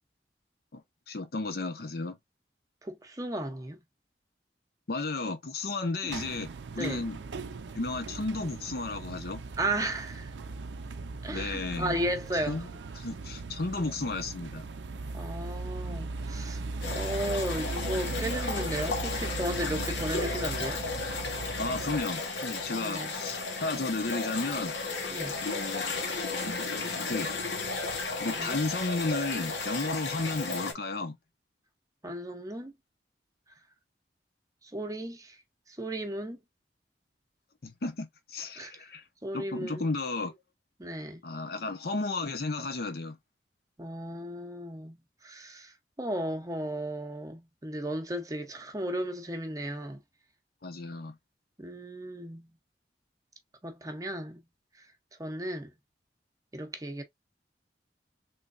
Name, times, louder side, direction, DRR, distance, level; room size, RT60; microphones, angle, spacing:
voice 1, 1.1-2.2 4.9-7.2 7.7-9.4 11.3-12.0 12.3-12.7 13.0-14.6 19.6-19.9 21.6-24.8 25.4-25.9 27.0-27.3 28.2-31.2 37.6-39.0 39.3-40.3 41.2-43.2 50.6-51.1, left 3 dB, 60° left, 0.7 m, -33 dB
voice 2, 2.8-3.8 6.8-7.1 9.6-10.3 11.2-12.7 15.1-16.6 16.9-20.8 22.8-23.1 25.1-25.4 28.3-28.6 32.0-32.7 34.6-35.4 35.7-36.4 38.6-38.9 39.2-39.9 40.8-41.2 43.8-45.0 45.2-50.0 51.6-52.5 53.6-54.4 55.2-55.7 56.5-57.0, right 1 dB, 20° right, 0.7 m, -35 dB
sound 1, 6.1-22.0, right 3 dB, 90° right, 0.5 m, -38 dB
sound 2, 16.8-30.7, left 3 dB, 90° left, 1.0 m, -34 dB
3.4 x 3.1 x 2.4 m
head